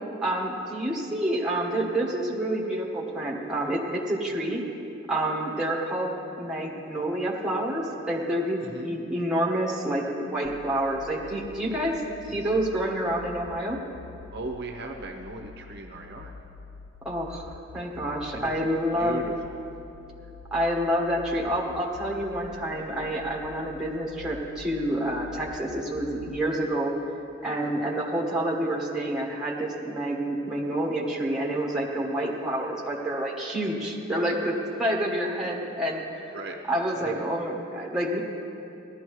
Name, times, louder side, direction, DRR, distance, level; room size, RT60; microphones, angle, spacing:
voice 1, 0.2-4.6 5.1-12.0 12.3-13.8 17.0-19.2 20.5-26.9 27.4-36.3 36.7-38.2, right 1 dB, 5° right, -3 dB, 1.3 m, -28 dB
voice 2, 8.6-9.0 12.3-12.4 14.3-16.3 18.3-18.6 18.9-19.7 27.6-27.8 35.4-35.5 36.3-36.6 36.9-37.2, right 2 dB, 55° right, 2 dB, 0.8 m, -38 dB
sound 1, 10.4-26.4, left 4 dB, 45° left, 0.3 m, -46 dB
17.5 x 12.0 x 3.1 m, 2.8 s
head